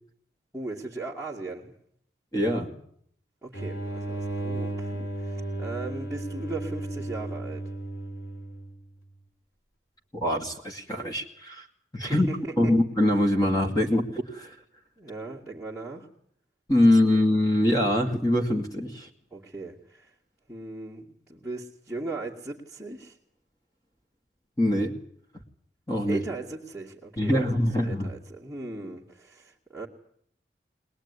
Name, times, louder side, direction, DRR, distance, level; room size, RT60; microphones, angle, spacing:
voice 1, 0.5-1.7 3.4-7.6 12.0-12.7 15.0-16.1 19.3-20.1 20.5-23.2 26.0-29.9, right 3 dB, 5° right, -6 dB, 2.3 m, -38 dB
voice 2, 2.3-2.8 10.1-11.7 11.9-12.3 12.6-14.5 16.7-19.1 24.6-25.0 25.9-26.2 27.2-28.1, left 1 dB, 20° left, 2 dB, 2.3 m, -23 dB
sound 1, 3.5-8.9, right 1 dB, 85° left, 3.6 m, -34 dB
21.5 x 20.5 x 9.8 m, 0.66 s
head